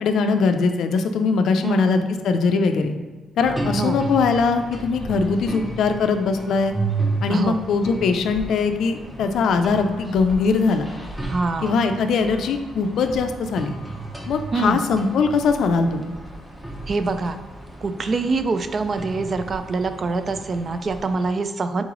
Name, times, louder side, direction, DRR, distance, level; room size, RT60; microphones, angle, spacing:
voice 1, 0.0-3.0 3.4-6.8 7.2-10.9 11.6-13.7 14.3-16.1, left 4 dB, 70° left, 7 dB, 0.4 m, -21 dB
voice 2, 1.6-2.1 3.8-4.0 7.3-7.6 11.2-11.7 14.5-14.8 16.9-17.4 17.8-21.8, right 3 dB, 40° right, 9 dB, 0.3 m, -25 dB
sound 1, 3.4-21.3, right 2 dB, 5° right, 0.7 m, -33 dB
3.8 x 3.0 x 3.7 m, 1.3 s
cardioid pair, 90°, 0 cm